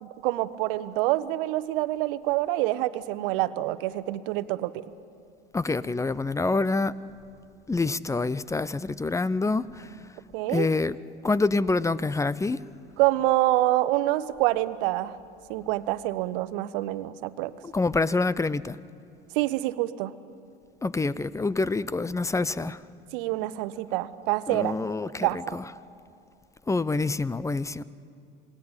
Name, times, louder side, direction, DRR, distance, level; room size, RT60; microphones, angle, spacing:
voice 1, 0.0-4.7 10.3-10.7 13.0-15.1 15.5-17.5 19.3-20.1 23.1-24.7 25.2-25.6, right 17 dB, 65° right, 14 dB, 1.1 m, -26 dB
voice 2, 5.5-6.9 7.7-9.9 10.5-11.0 11.2-12.6 17.6-18.8 20.8-22.8 24.5-25.6 26.7-27.8, left 3 dB, 10° left, 19 dB, 0.6 m, -26 dB
27.5 x 19.0 x 8.8 m, 2.5 s
hypercardioid pair, 80°, 29 cm